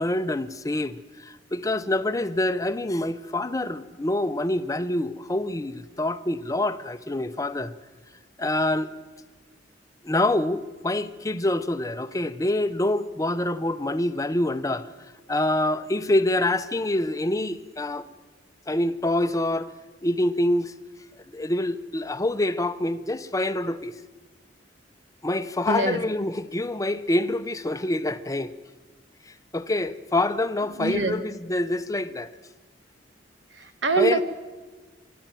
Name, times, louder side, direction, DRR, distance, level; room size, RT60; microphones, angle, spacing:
voice 1, 0.0-7.7 8.4-8.9 10.0-14.9 15.3-18.1 18.7-19.7 20.0-20.7 21.3-24.0 25.2-28.5 29.5-32.3 34.0-34.2, left 1 dB, 20° left, 0.7 m, -26 dB
voice 2, 25.7-26.0 30.7-31.1 33.5-34.2, right 3 dB, 85° right, 1.5 m, -24 dB
25.5 x 11.0 x 9.0 m
head